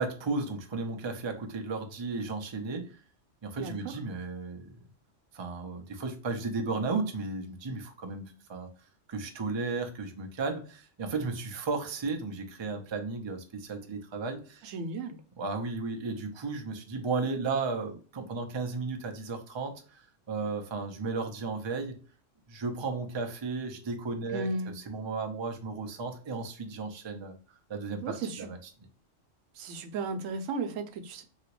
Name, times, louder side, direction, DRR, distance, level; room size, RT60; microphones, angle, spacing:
voice 1, 0.0-2.9 3.4-4.7 5.3-8.7 9.1-14.7 15.4-22.0 22.5-24.5 24.9-27.3 27.7-28.6, right 4 dB, 35° right, 0.4 m, -34 dB
voice 2, 3.6-3.9 14.6-15.2 24.3-24.7 28.0-28.5 29.5-31.2, right 3 dB, 85° right, 1.0 m, -35 dB
3.0 x 2.9 x 2.8 m
omnidirectional pair, 1.3 m